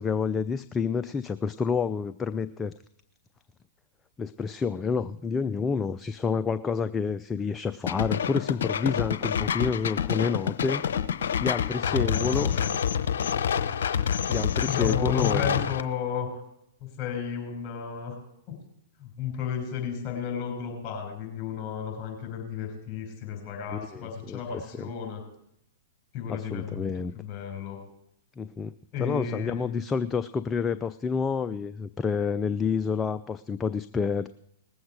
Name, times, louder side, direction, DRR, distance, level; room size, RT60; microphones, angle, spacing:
voice 1, 0.0-2.7 4.2-10.8 11.4-12.6 14.3-15.6 23.7-24.9 26.3-27.1 28.4-28.7 29.0-34.3, left 5 dB, 15° left, 11 dB, 0.4 m, -29 dB
sound 1, 7.9-15.8, left 8 dB, 70° left, 0.8 m, -27 dB
voice 2, 11.8-12.7 14.6-16.4 16.8-18.1 19.0-25.2 26.1-26.9 27.1-27.8 28.9-29.8, left 7 dB, 35° left, 2 dB, 6.3 m, -33 dB
19.5 x 7.9 x 4.8 m, 0.77 s
hypercardioid pair, 115°, 0 cm